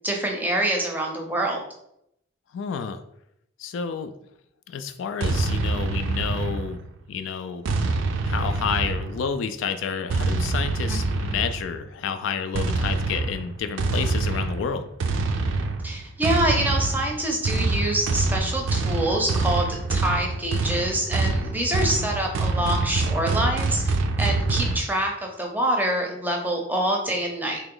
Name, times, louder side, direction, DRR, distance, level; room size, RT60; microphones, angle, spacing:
voice 1, 0.0-1.6 10.9-11.1 15.8-27.6, right 1 dB, 10° right, 1 dB, 0.6 m, -26 dB
voice 2, 2.5-3.0 3.6-4.1 4.7-6.8 7.1-7.7 8.3-14.9, left 6 dB, 70° left, 8 dB, 0.3 m, -30 dB
sound 1, 5.2-7.0 7.6-9.4 10.1-11.7 12.5-24.8, right 3 dB, 70° right, 0.4 m, -25 dB
3.0 x 2.9 x 3.8 m, 0.77 s
head